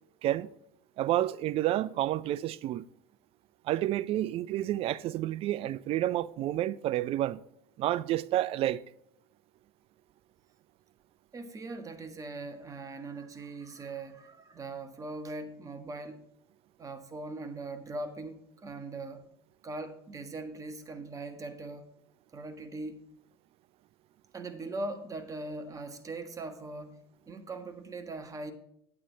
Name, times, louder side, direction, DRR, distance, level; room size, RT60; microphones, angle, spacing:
voice 1, 1.0-2.8 3.7-7.4 7.8-8.8, right 13 dB, 50° right, 0.5 m, -29 dB
voice 2, 11.3-16.2 16.8-19.3 19.6-21.9 22.3-23.1 24.3-27.0 27.3-28.5, right 2 dB, 25° right, 1.5 m, -40 dB
8.8 x 8.7 x 4.0 m
hypercardioid pair, 85°, 13 cm